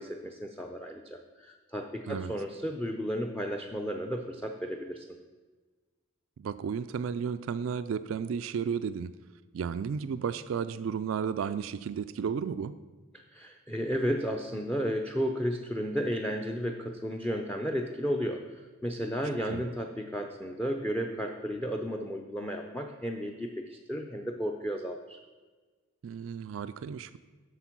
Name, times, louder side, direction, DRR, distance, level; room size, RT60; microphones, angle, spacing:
voice 1, 0.0-5.1 13.1-25.2, equal, 10° left, 3 dB, 0.5 m, -33 dB
voice 2, 6.4-9.1 9.5-12.7 19.5-19.6 26.0-27.2, right 6 dB, 75° right, 12 dB, 0.3 m, -33 dB
8.0 x 6.5 x 6.0 m, 1.3 s
head